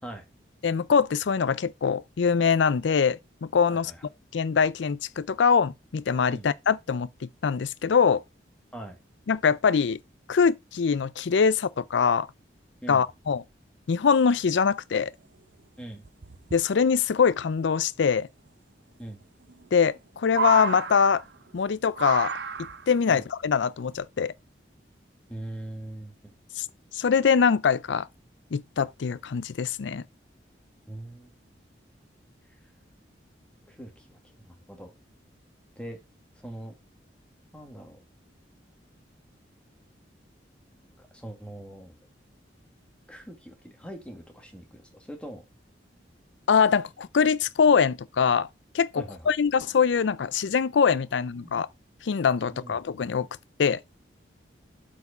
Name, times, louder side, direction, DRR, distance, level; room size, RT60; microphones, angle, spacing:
voice 1, 0.6-3.9 4.3-8.2 9.3-10.0 10.3-12.3 12.9-13.4 13.9-15.1 16.5-18.3 19.7-21.2 21.5-22.3 22.9-24.3 26.6-26.7 26.9-28.1 28.5-30.0 46.5-48.5 48.7-51.7 52.0-53.3 53.6-53.8, left 6 dB, 75° left, 0.4 m, -23 dB
voice 2, 3.7-4.0 6.3-6.5 8.7-9.0 12.8-13.0 15.8-16.0 19.0-19.2 23.1-23.2 25.3-26.3 30.9-31.3 33.7-34.9 35.8-36.0 36.4-36.7 37.5-38.0 41.0-42.0 43.1-45.4 49.0-49.3 51.3-51.5 52.5-52.8, right 1 dB, 5° left, 2.0 m, -42 dB
sound 1, 15.0-15.1 15.3-15.4 16.0-16.6 18.2-18.3 19.5-20.0 20.2-21.5 22.0-23.0 24.0-24.1, right 5 dB, 70° right, 0.7 m, -32 dB
8.1 x 4.7 x 4.2 m
head